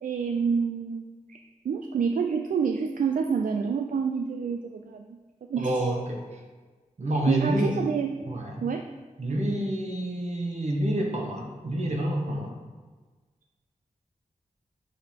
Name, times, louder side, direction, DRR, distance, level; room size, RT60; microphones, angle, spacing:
voice 1, 0.0-1.4 1.6-5.2 5.5-5.9 7.1-8.2 8.6-8.8, right 6 dB, 75° right, 4 dB, 0.4 m, -28 dB
voice 2, 5.6-6.2 7.0-7.7 8.3-8.6 9.2-12.5, right 1 dB, 55° right, 0 dB, 1.2 m, -28 dB
6.5 x 4.7 x 3.7 m, 1.4 s
wide cardioid pair, 75°, 14 cm